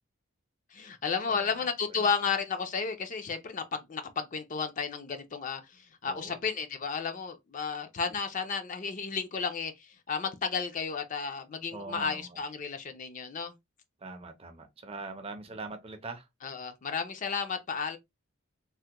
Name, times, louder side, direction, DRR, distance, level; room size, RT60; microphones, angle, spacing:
voice 1, 0.7-13.5 16.4-18.0, left 5 dB, 35° left, 0.4 m, -33 dB
voice 2, 1.3-1.7 2.0-2.1 6.1-6.4 11.7-12.4 14.0-16.3, right 3 dB, 25° right, 0.5 m, -42 dB
3.3 x 2.1 x 2.8 m
head